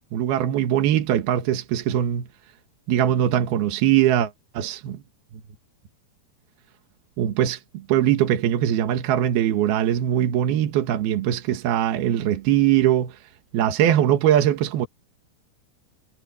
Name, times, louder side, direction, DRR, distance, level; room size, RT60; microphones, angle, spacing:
voice 1, 0.1-2.3 2.9-5.0 7.2-13.2 13.5-14.9, right 11 dB, 80° right, 3.4 m, -21 dB
omnidirectional pair, 4.4 m